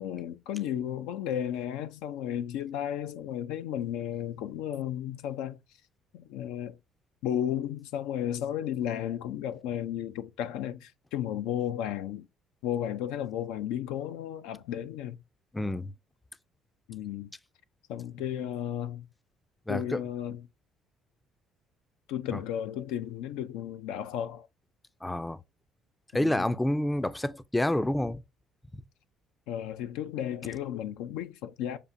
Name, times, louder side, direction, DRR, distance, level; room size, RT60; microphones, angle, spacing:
voice 1, 0.0-5.6 6.1-6.8 7.2-12.3 12.6-15.2 16.9-17.3 17.9-19.1 19.7-20.5 22.1-24.5 26.1-26.5 29.5-31.8, left 10 dB, 85° left, 0.4 m, -34 dB
voice 2, 15.5-15.9 19.7-20.0 22.3-22.4 25.0-25.4 26.1-28.2, left 1 dB, 10° left, 0.4 m, -28 dB
6.7 x 2.4 x 2.6 m
supercardioid pair, 70°, 0 cm